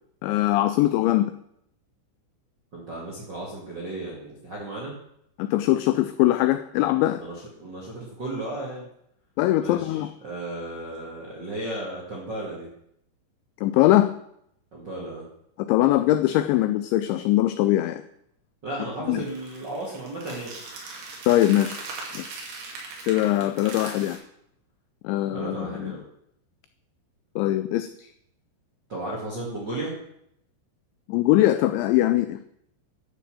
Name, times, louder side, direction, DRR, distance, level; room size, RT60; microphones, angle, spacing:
voice 1, 0.2-1.3 5.4-7.2 9.4-10.1 13.6-14.1 15.7-18.0 19.1-19.2 21.3-21.8 22.1-22.4 23.1-24.2 25.0-25.9 27.4-28.1 31.1-32.4, left 15 dB, 85° left, 10 dB, 2.6 m, -21 dB
voice 2, 2.7-4.9 7.2-8.9 9.6-12.7 14.7-15.3 18.6-20.5 25.3-26.0 28.9-29.9, right 2 dB, 55° right, -4 dB, 1.2 m, -34 dB
sound 1, 19.2-24.2, right 3 dB, 70° right, 4.9 m, -39 dB
11.0 x 6.7 x 7.7 m, 0.74 s
omnidirectional pair, 5.8 m